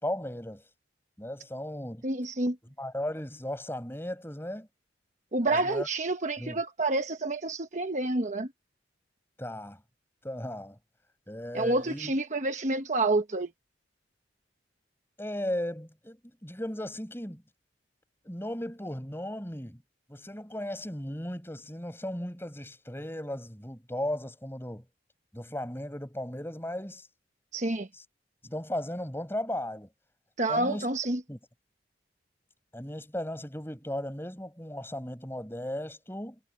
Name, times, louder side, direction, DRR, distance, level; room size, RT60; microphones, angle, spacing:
voice 1, 0.0-0.6 1.2-2.1 2.8-4.7 5.4-5.9 6.4-6.6 9.4-9.8 10.2-10.8 11.3-12.1 15.2-17.4 18.2-19.8 20.1-24.8 25.3-27.1 27.9-28.0 28.4-29.9 30.5-30.9 31.3-31.4 32.7-36.4, left 1 dB, 15° left, 6.1 m, -36 dB
voice 2, 2.0-2.6 5.3-8.5 11.5-13.5 27.5-27.9 30.4-31.2, right 2 dB, 40° right, 1.1 m, -28 dB
head